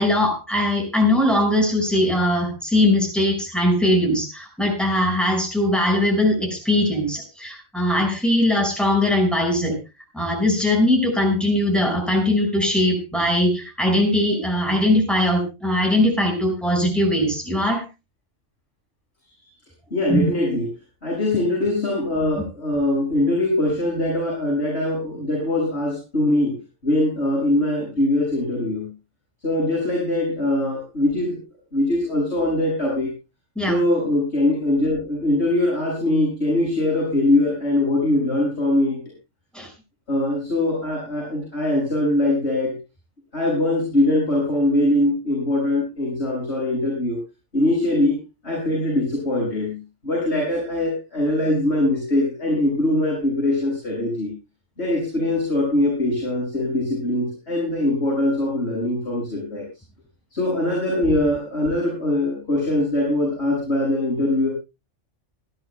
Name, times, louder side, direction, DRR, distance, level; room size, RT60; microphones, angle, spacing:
voice 1, 0.0-9.8 10.1-17.8 20.1-20.2 33.6-33.7 39.5-39.7, left 1 dB, ahead, 1 dB, 5.2 m, -20 dB
voice 2, 19.9-20.7 21.0-28.9 29.4-31.4 31.7-33.1 33.7-39.0 40.1-42.7 43.3-47.2 47.5-48.2 48.4-54.3 54.8-59.7 60.3-64.5, left 1 dB, 60° left, -5 dB, 6.1 m, -22 dB
27.0 x 10.5 x 2.2 m, 0.26 s
omnidirectional pair, 1.3 m